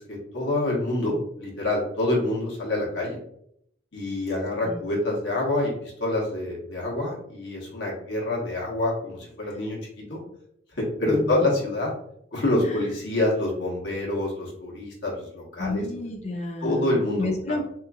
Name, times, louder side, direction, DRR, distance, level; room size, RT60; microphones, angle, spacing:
voice 1, 0.0-3.2 3.9-9.8 10.1-10.2 10.7-11.9 12.3-15.8 16.6-17.6, left 2 dB, 85° left, -3 dB, 1.2 m, -27 dB
voice 2, 11.1-11.5 12.6-12.9 15.6-17.6, left 2 dB, 35° left, 3 dB, 0.6 m, -31 dB
3.8 x 2.9 x 2.3 m, 0.71 s
head